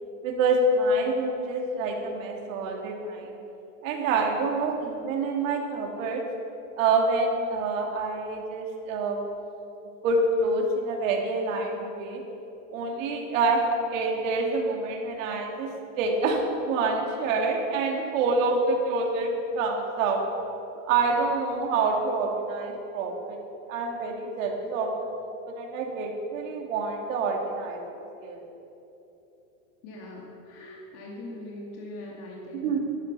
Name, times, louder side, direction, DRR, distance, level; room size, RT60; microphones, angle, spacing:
voice 1, 0.2-3.4 3.8-6.2 6.8-9.2 10.0-12.2 12.7-15.7 16.0-20.2 20.9-23.4 23.7-24.9 25.5-27.8 28.2-28.4 32.5-32.8, right 3 dB, 75° right, 1 dB, 2.6 m, -27 dB
voice 2, 29.8-32.8, left 1 dB, 50° left, -2 dB, 2.6 m, -41 dB
12.5 x 11.5 x 5.6 m, 3.0 s
supercardioid pair, 150°, 39 cm